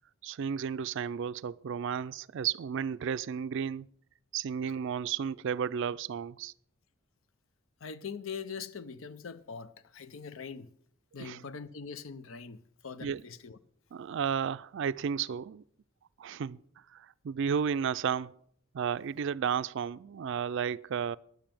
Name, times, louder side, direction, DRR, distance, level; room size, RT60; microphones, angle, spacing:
voice 1, 0.2-3.9 4.3-6.5 11.2-11.4 13.0-13.2 13.9-15.6 16.2-16.6 16.9-18.4 18.7-21.2, right 7 dB, 65° right, 0.4 m, -33 dB
voice 2, 7.8-10.7 11.1-13.6, left 5 dB, 80° left, 0.6 m, -42 dB
10.5 x 8.8 x 7.5 m
head